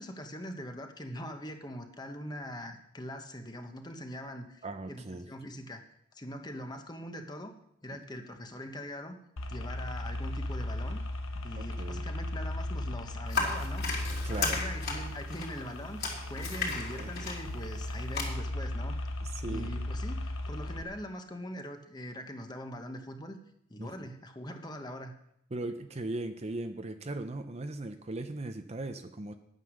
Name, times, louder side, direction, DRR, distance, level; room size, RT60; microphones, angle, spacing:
voice 1, 0.0-5.8 6.1-7.5 7.8-9.2 9.5-11.0 11.4-13.8 14.2-19.0 19.5-23.4 23.7-25.1, equal, 20° left, 5 dB, 1.1 m, -42 dB
voice 2, 4.6-5.3 7.9-8.0 11.6-12.0 14.2-14.6 17.0-17.1 19.2-19.7 23.8-24.1 25.5-29.3, right 2 dB, 30° right, 8 dB, 0.6 m, -38 dB
sound 1, 9.4-20.8, left 1 dB, 70° left, 1.1 m, -36 dB
sound 2, 13.3-18.2, left 4 dB, 50° left, 3.2 m, -35 dB
9.9 x 9.3 x 6.3 m, 0.76 s
head